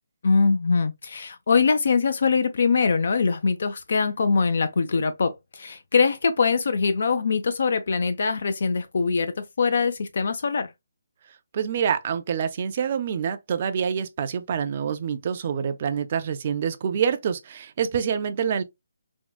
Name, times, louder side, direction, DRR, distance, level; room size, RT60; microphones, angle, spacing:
voice 1, 0.2-10.7, left 5 dB, 55° left, 0.3 m, -23 dB
voice 2, 11.5-18.6, right 7 dB, 35° right, 0.4 m, -26 dB
3.5 x 2.1 x 2.2 m
hypercardioid pair, 165°, 0 cm